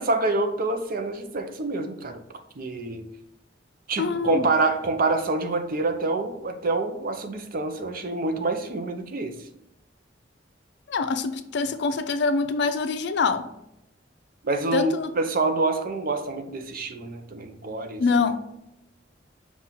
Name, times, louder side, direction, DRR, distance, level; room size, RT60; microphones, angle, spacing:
voice 1, 0.0-2.2 2.6-3.1 3.9-9.3 14.4-18.0, right 3 dB, 50° right, 7 dB, 0.5 m, -26 dB
voice 2, 4.0-4.5 10.9-13.5 14.7-15.1 18.0-18.4, left 4 dB, 65° left, 9 dB, 0.4 m, -24 dB
5.8 x 2.4 x 3.7 m, 0.83 s
head